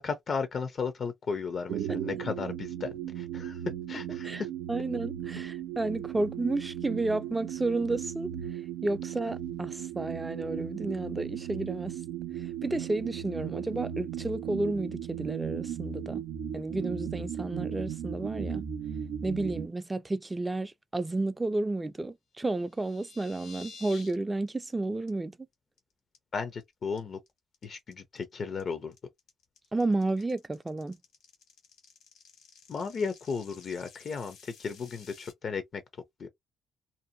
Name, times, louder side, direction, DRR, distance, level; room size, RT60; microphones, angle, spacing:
voice 1, 0.0-3.6 3.9-4.5 26.3-27.2 27.6-28.9 32.7-35.8 36.2-36.3, left 5 dB, 50° left, 0.5 m, -35 dB
sound 1, 1.7-19.7, right 9 dB, 90° right, 0.4 m, -36 dB
voice 2, 4.7-8.3 8.8-12.0 12.6-16.2 16.5-18.6 19.2-25.4 29.7-31.0, right 2 dB, 20° right, 0.3 m, -31 dB
sound 2, 22.5-24.1 24.5-24.7 25.1-25.2 25.5-25.8 26.1-26.6 27.0-35.3, left 5 dB, 80° left, 1.3 m, -52 dB
2.6 x 2.1 x 2.6 m
cardioid pair, 90°, 0 cm